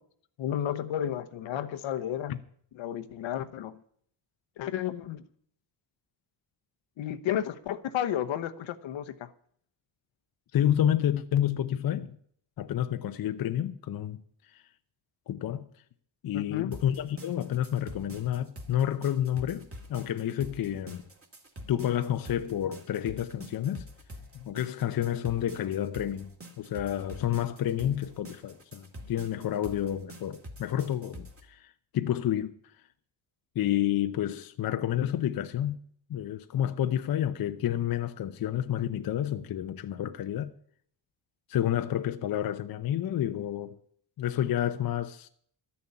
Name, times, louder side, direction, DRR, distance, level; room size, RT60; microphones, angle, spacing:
voice 1, 0.4-2.4 2.7-3.8 4.6-5.2 7.0-9.3 16.3-16.7, left 10 dB, 75° left, 1.0 m, -32 dB
voice 2, 10.5-12.2 12.6-14.2 14.5-14.6 15.3-15.7 16.2-21.0 21.7-23.9 24.4-26.3 26.6-32.6 33.5-35.8 36.1-40.5 41.5-43.8 44.2-45.3, left 11 dB, 50° left, 0.7 m, -29 dB
sound 1, 16.7-31.4, equal, 30° right, 2.2 m, -46 dB
12.5 x 7.0 x 9.5 m
cardioid pair, 110°, 47 cm